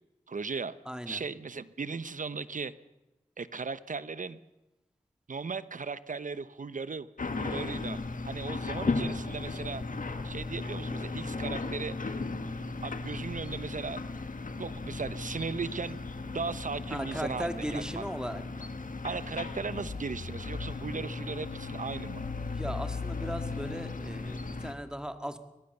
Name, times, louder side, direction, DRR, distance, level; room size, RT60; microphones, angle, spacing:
voice 1, 0.3-0.7 1.1-2.7 3.4-4.4 5.3-7.1 7.4-8.0 8.3-9.8 10.2-12.0 12.8-14.0 14.6-16.0 16.3-18.1 19.0-22.2, right 4 dB, 70° right, 15 dB, 0.9 m, -37 dB
voice 2, 0.9-1.2 16.9-18.7 22.5-25.4, equal, 5° right, 8 dB, 2.1 m, -37 dB
sound 1, 7.2-24.7, left 3 dB, 75° left, 1.8 m, -36 dB
23.5 x 19.0 x 6.8 m, 0.98 s
wide cardioid pair, 50°, 14 cm